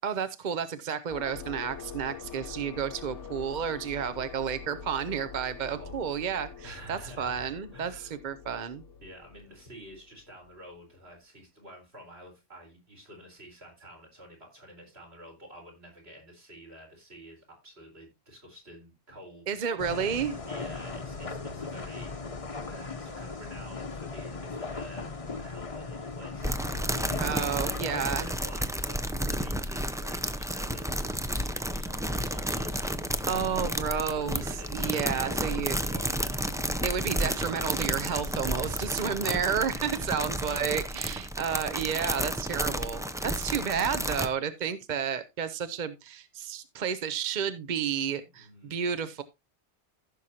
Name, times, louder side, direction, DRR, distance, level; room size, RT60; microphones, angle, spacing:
voice 1, 0.0-8.8 19.5-20.4 27.2-28.3 33.3-35.8 36.8-49.2, right 7 dB, 50° right, 11 dB, 0.7 m, -31 dB
sound 1, 1.1-10.6, left 6 dB, 85° left, 1.2 m, -45 dB
voice 2, 5.6-6.1 6.6-8.1 9.0-20.2 20.4-33.0 33.4-36.7 38.4-39.4 39.7-39.8 43.2-43.4 48.3-48.8, equal, 65° right, 0 dB, 4.4 m, -49 dB
sound 2, 19.8-28.1, left 4 dB, 30° left, 0.9 m, -38 dB
sound 3, 26.4-44.3, equal, 5° right, 0.4 m, -31 dB
15.0 x 6.3 x 2.8 m, 0.23 s
omnidirectional pair, 1.2 m